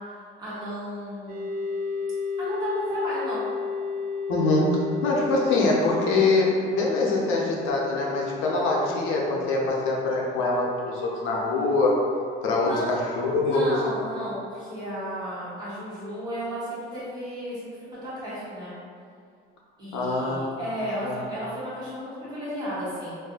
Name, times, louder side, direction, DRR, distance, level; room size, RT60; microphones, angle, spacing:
voice 1, 0.4-1.5 2.4-3.4 12.6-12.9 13.4-18.7 19.8-23.2, equal, 20° right, -11 dB, 1.1 m, -33 dB
sound 1, 1.3-15.2, left 5 dB, 35° right, 0.4 m, -34 dB
voice 2, 4.3-4.7 5.0-11.9 12.4-13.8 19.9-20.4 21.0-21.2, left 2 dB, 85° left, -3 dB, 0.7 m, -24 dB
2.7 x 2.4 x 3.6 m, 2.2 s
cardioid pair, 170°, 20 cm